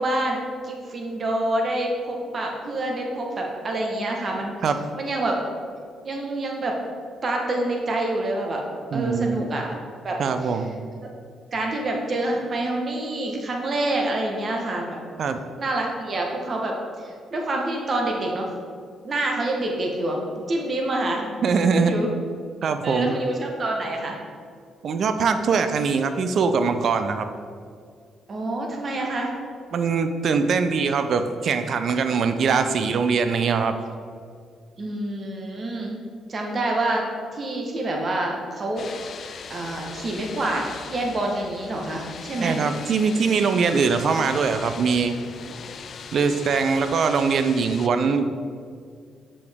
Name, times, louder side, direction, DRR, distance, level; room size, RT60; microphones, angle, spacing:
voice 1, 0.0-4.6 4.9-5.4 6.0-6.8 7.2-8.6 8.9-9.7 10.0-10.6 11.0-11.1 11.5-15.0 15.6-18.5 19.0-21.3 21.7-22.1 22.8-24.1 28.3-29.3 34.8-36.0 36.3-37.1 37.3-42.6, right 1 dB, 45° right, 0 dB, 1.0 m, -27 dB
voice 2, 8.9-9.5 10.2-10.7 15.2-15.4 21.4-21.9 22.6-23.1 24.8-27.3 29.7-33.7 42.4-45.2 46.1-48.3, right 5 dB, 60° right, 8 dB, 0.4 m, -22 dB
sound 1, 38.8-47.9, left 6 dB, 55° left, 0.3 m, -40 dB
7.0 x 4.9 x 3.5 m, 2.1 s
cardioid pair, 90°, 0 cm